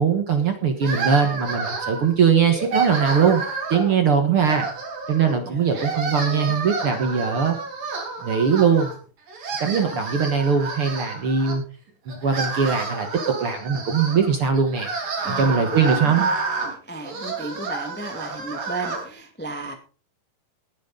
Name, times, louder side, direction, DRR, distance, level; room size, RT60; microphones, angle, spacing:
voice 1, 0.0-3.4 3.7-4.7 5.1-7.6 8.2-8.9 9.6-11.6 12.1-14.9 15.3-16.2, right 6 dB, 55° right, 6 dB, 1.7 m, -21 dB
sound 1, 0.8-2.1 2.5-4.0 4.4-5.4 5.7-9.0 9.3-11.6 12.1-19.0, right 4 dB, 70° right, 5.6 m, -30 dB
voice 2, 5.4-6.5 15.2-16.4 16.7-19.7, right 2 dB, 10° left, 5 dB, 0.7 m, -35 dB
20.0 x 9.6 x 3.8 m, 0.38 s
omnidirectional pair, 4.1 m